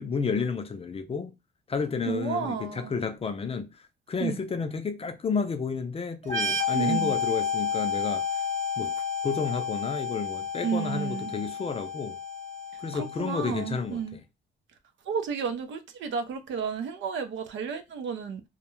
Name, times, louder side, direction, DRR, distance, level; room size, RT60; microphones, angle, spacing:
voice 1, 0.0-1.3 1.7-3.7 4.1-8.4 8.8-8.9 9.2-12.2 12.8-14.2, left 5 dB, 30° left, 0.4 m, -31 dB
voice 2, 2.1-2.9 4.2-4.4 6.7-7.1 10.6-11.3 12.9-14.2 15.1-18.4, right 6 dB, 70° right, 0.5 m, -32 dB
sound 1, 6.2-13.7, left 5 dB, 40° right, 1.0 m, -31 dB
2.3 x 2.1 x 3.0 m
cardioid pair, 90°, 20 cm